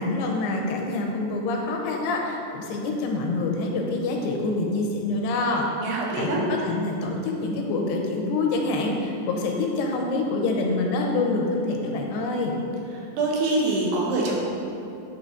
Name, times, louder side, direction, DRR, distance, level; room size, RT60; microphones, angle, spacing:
voice 1, 0.0-5.7 6.2-12.5, left 2 dB, 85° left, 1 dB, 2.7 m, -26 dB
voice 2, 5.8-6.4 13.0-14.4, right 2 dB, 80° right, -2 dB, 3.0 m, -25 dB
9.7 x 4.0 x 3.8 m, 2.8 s
omnidirectional pair, 4.7 m